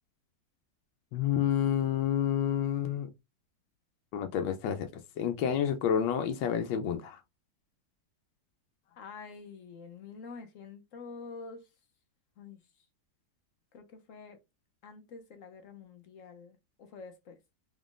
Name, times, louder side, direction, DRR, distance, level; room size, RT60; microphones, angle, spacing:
voice 1, 1.1-3.1 4.1-4.9 5.2-7.2, left 9 dB, 80° left, 1.3 m, -29 dB
voice 2, 9.0-11.7 12.4-12.6 13.7-14.4 14.8-17.4, left 4 dB, 60° left, 0.9 m, -47 dB
3.9 x 3.6 x 2.4 m
omnidirectional pair, 1.9 m